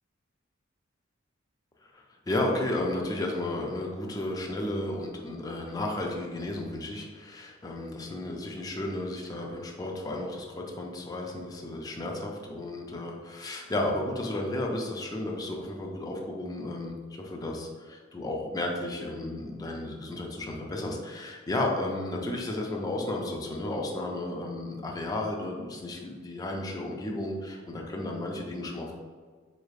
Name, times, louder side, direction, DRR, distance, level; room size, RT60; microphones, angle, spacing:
voice 1, 1.8-28.9, left 1 dB, 20° left, 0 dB, 0.4 m, -33 dB
4.4 x 3.2 x 2.4 m, 1.5 s
head